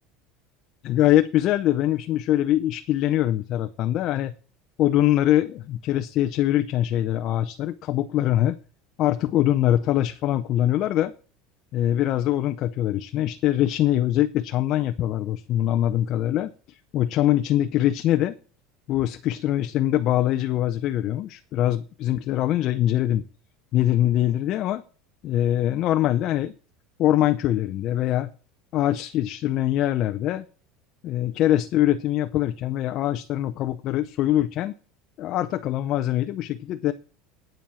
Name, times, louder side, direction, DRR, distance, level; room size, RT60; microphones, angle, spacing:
voice 1, 0.8-4.3 4.8-8.6 9.0-11.1 11.7-18.3 18.9-23.2 23.7-24.8 25.2-26.5 27.0-28.3 28.7-30.4 31.0-34.7 35.2-36.9, left 13 dB, 40° left, 9 dB, 0.6 m, -23 dB
8.9 x 7.6 x 7.0 m, 0.39 s
cardioid pair, 160°, 0 cm